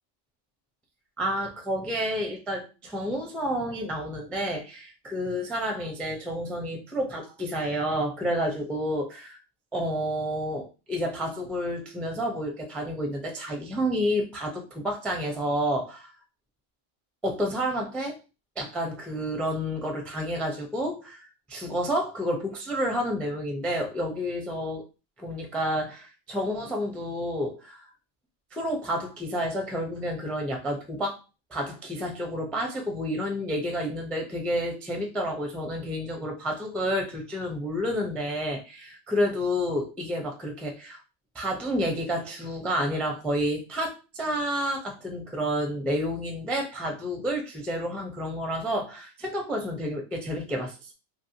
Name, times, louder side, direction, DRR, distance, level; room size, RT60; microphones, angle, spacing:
voice 1, 1.2-9.4 9.7-16.1 17.2-18.2 18.6-24.9 25.2-27.8 28.5-31.2 31.5-41.0 41.3-50.9, equal, ahead, 1 dB, 0.3 m, -30 dB
3.0 x 2.7 x 2.7 m, 0.30 s
omnidirectional pair, 1.2 m